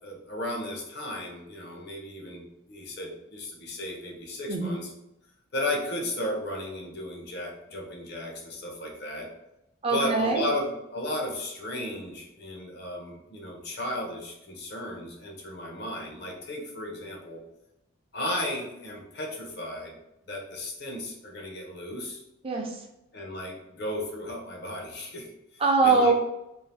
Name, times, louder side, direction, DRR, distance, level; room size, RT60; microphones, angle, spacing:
voice 1, 0.0-4.9 5.5-9.3 9.9-17.4 18.1-20.0 20.3-22.2 23.1-26.1, left 1 dB, 50° left, 0 dB, 0.8 m, -34 dB
voice 2, 4.5-4.8 9.8-10.5 22.4-22.8 25.6-26.1, right 3 dB, 25° right, 1 dB, 0.5 m, -23 dB
2.7 x 2.5 x 3.4 m, 0.86 s
head